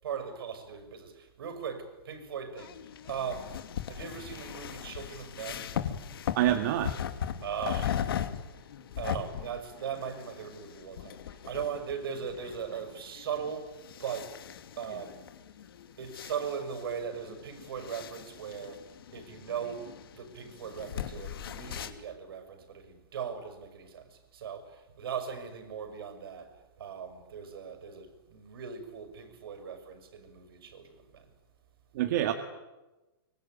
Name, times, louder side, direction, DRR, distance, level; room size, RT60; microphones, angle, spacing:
voice 1, 0.0-2.8 3.0-5.7 7.4-8.1 9.0-14.4 14.8-15.3 15.9-31.3, right 7 dB, 70° right, 6.0 m, -39 dB
sound 1, 2.6-21.9, left 9 dB, 65° left, 2.7 m, -39 dB
voice 2, 6.3-6.9 31.9-32.3, right 12 dB, 45° right, 2.1 m, -26 dB
25.0 x 23.5 x 9.3 m
hypercardioid pair, 155°, 13 cm